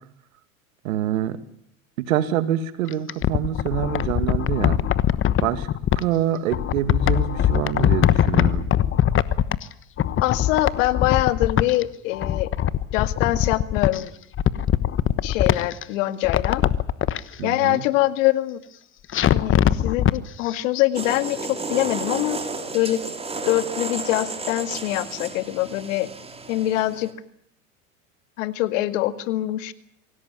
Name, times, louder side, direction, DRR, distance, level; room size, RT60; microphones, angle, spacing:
voice 1, 0.8-1.4 2.0-4.8 5.4-5.7 6.0-8.7 17.4-17.8, right 11 dB, 75° right, 12 dB, 2.2 m, -26 dB
sound 1, 2.9-6.0 6.5-9.7 10.0-11.8 12.1-14.0 14.3-15.8 16.2-17.2 19.1-20.2 20.5-20.6, left 10 dB, 30° left, 1.1 m, -21 dB
voice 2, 10.2-12.5 12.9-14.1 15.2-16.6 17.4-18.6 19.3-22.4 22.7-23.0 23.5-26.1 26.5-27.1 28.4-29.7, left 16 dB, 70° left, 12 dB, 2.0 m, -24 dB
sound 2, 20.9-27.1, right 3 dB, 15° right, 3.4 m, -32 dB
25.0 x 17.0 x 9.8 m, 0.69 s
hypercardioid pair, 100°, 41 cm